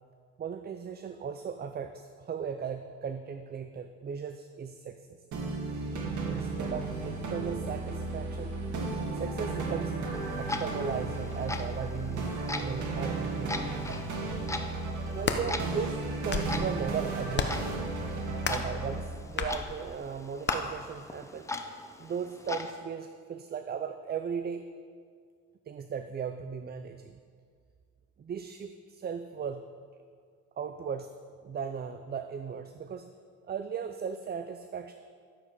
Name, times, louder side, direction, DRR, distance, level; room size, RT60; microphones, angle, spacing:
voice 1, 0.4-5.1 6.3-8.5 9.1-10.0 10.4-13.8 15.2-16.0 16.2-17.7 18.5-21.6 22.0-24.7 25.7-27.2 28.2-29.6 30.6-31.1 31.4-33.1 33.5-34.9, right 6 dB, 35° right, 9 dB, 0.5 m, -37 dB
sound 1, 5.3-19.0, right 3 dB, 75° right, 1.9 m, -34 dB
Clock, 10.1-22.7, left 2 dB, 10° left, 0.7 m, -41 dB
sound 2, 15.0-15.4 16.1-16.6 17.3-17.7 18.4-18.7 19.4-19.6 20.5-20.6, left 5 dB, 35° left, 0.9 m, -31 dB
11.5 x 7.6 x 4.7 m, 2.1 s
cardioid pair, 90°, 30 cm